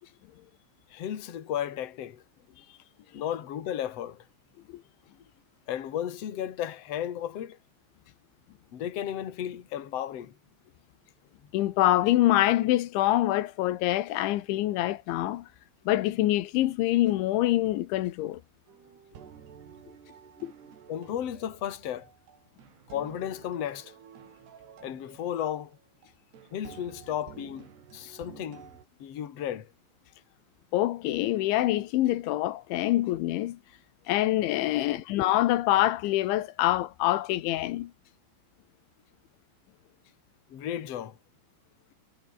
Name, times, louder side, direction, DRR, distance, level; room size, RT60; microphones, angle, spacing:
voice 1, 0.9-2.2 3.1-4.2 5.7-7.6 8.7-10.4 11.4-11.5 20.9-22.1 22.9-23.9 24.8-25.8 26.5-28.7 29.0-29.7 40.5-41.2, left 10 dB, 45° left, 2.3 m, -34 dB
voice 2, 11.5-15.5 15.9-18.4 20.4-20.5 30.7-33.6 34.1-37.9, left 15 dB, 75° left, 3.5 m, -25 dB
sound 1, 18.7-28.9, right 8 dB, 60° right, 5.2 m, -51 dB
omnidirectional pair, 5.6 m